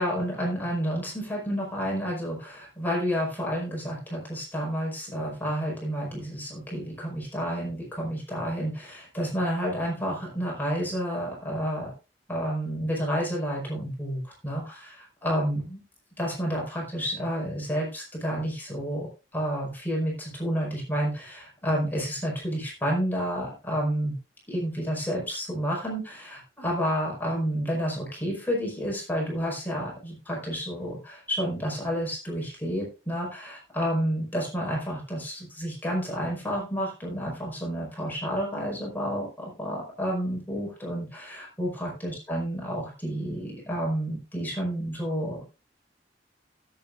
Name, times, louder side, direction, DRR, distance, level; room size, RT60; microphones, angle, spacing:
voice 1, 0.0-11.9 12.3-15.8 16.2-19.1 19.3-24.2 24.5-45.4, equal, 10° left, -3 dB, 4.9 m, -30 dB
16.0 x 8.7 x 2.6 m, 0.29 s
head